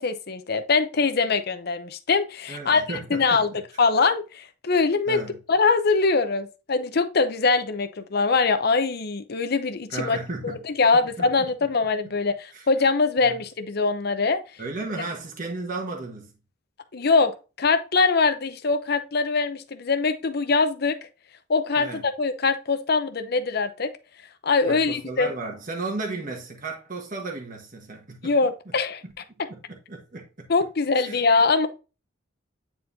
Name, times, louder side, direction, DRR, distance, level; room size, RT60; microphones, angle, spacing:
voice 1, 0.0-3.5 3.8-5.2 5.5-10.2 10.4-14.4 16.9-17.3 17.6-21.0 21.5-23.9 24.4-25.3 28.2-29.0 30.5-31.7, left 4 dB, 55° left, 0.7 m, -23 dB
voice 2, 2.5-3.6 5.1-5.4 9.9-10.7 10.9-11.5 12.5-12.6 13.2-13.4 14.6-16.3 21.8-22.0 24.7-28.3 29.0-29.1 29.5-30.5 31.0-31.2, right 3 dB, 45° right, 1.4 m, -34 dB
9.3 x 4.4 x 2.7 m
head